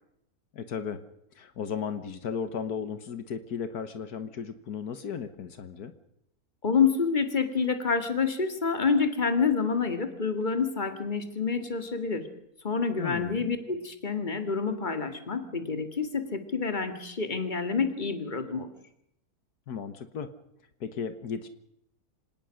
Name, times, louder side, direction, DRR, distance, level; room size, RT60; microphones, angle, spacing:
voice 1, 0.5-1.0 1.4-5.9 13.0-13.5 19.7-20.3 20.8-21.5, left 6 dB, 80° left, 10 dB, 1.8 m, -35 dB
voice 2, 6.6-12.3 12.6-18.7, left 5 dB, 30° left, 8 dB, 2.2 m, -28 dB
26.0 x 18.5 x 6.5 m, 0.77 s
omnidirectional pair, 1.6 m